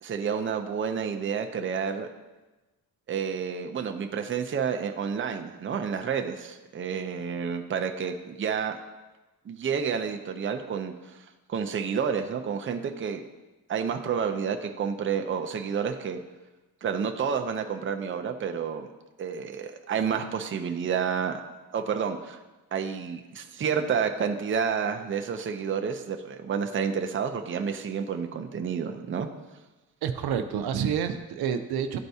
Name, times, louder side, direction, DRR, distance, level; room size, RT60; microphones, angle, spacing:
voice 1, 0.0-2.1 3.1-8.8 9.5-10.9 11.5-13.2 13.7-16.2 16.8-18.9 19.2-21.4 21.7-22.4 22.7-29.3, right 6 dB, 35° right, 5 dB, 0.6 m, -30 dB
voice 2, 30.0-32.0, right 8 dB, 80° right, 8 dB, 0.6 m, -28 dB
12.0 x 4.5 x 2.8 m, 1.1 s
cardioid pair, 105°, 37 cm